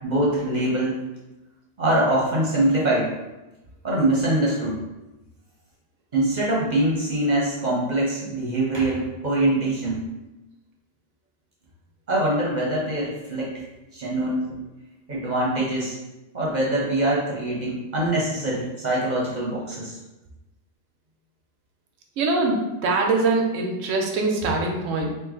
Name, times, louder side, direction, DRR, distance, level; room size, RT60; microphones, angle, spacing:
voice 1, 0.0-1.0 1.8-3.1 3.8-4.8 6.1-10.0 12.1-13.6 13.9-14.5 15.1-16.0 16.3-20.0, right 1 dB, 40° right, -5 dB, 1.0 m, -23 dB
voice 2, 22.2-25.2, right 3 dB, 85° right, 1 dB, 1.1 m, -23 dB
3.0 x 3.0 x 3.7 m, 1.0 s
omnidirectional pair, 1.3 m